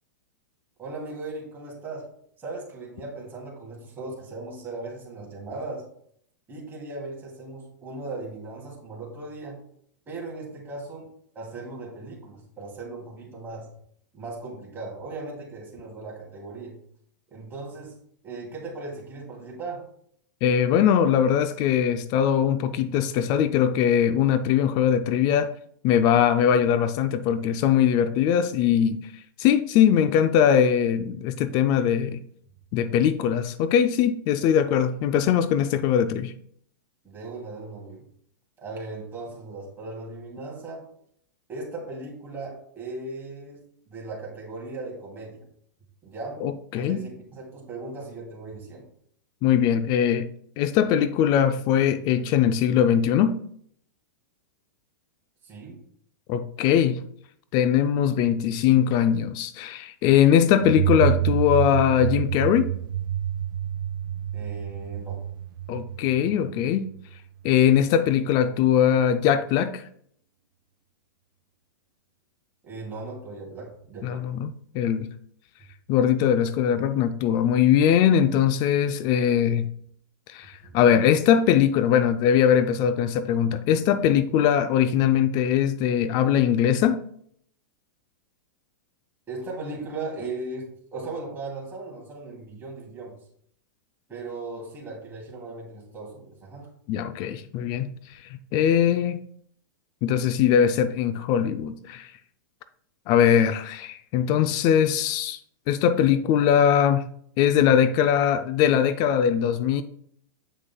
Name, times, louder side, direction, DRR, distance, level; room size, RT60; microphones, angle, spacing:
voice 1, 0.8-2.1 2.4-5.8 6.5-9.6 10.1-13.7 14.1-16.8 17.3-18.0 18.2-19.9 37.0-38.1 38.6-40.9 41.5-43.6 43.9-45.4 46.0-46.4 46.7-48.9 55.4-55.8 64.3-65.2 72.6-74.2 80.6-80.8 89.3-93.1 94.1-96.7, right 3 dB, 20° right, 2.7 m, -37 dB
voice 2, 20.4-25.5 25.8-29.0 29.4-32.2 32.7-36.3 46.4-47.0 49.4-50.3 50.6-53.4 56.3-57.0 57.5-62.7 65.7-66.8 67.4-69.8 74.0-74.5 74.7-75.1 75.9-79.7 80.3-87.0 96.9-97.9 98.3-99.2 100.0-102.1 103.1-105.4 105.7-107.0 107.4-109.8, left 9 dB, 40° left, 0.4 m, -21 dB
sound 1, 60.6-67.2, right 12 dB, 80° right, 0.4 m, -28 dB
7.7 x 6.3 x 2.3 m
hypercardioid pair, 125°, 11 cm